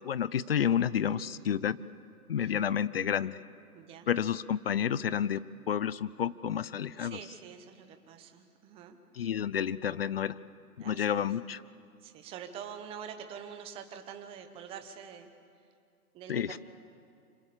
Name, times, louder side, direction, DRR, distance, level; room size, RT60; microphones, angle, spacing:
voice 1, 0.0-1.8 2.3-3.4 4.1-7.2 9.2-10.4 10.8-11.6 16.3-16.6, left 9 dB, 40° left, 18 dB, 0.5 m, -30 dB
voice 2, 3.7-4.1 7.0-9.0 10.8-11.3 12.0-15.3 16.1-16.6, right 8 dB, 10° right, 7 dB, 1.0 m, -45 dB
27.0 x 26.0 x 6.8 m, 2.4 s
hypercardioid pair, 145°, 46 cm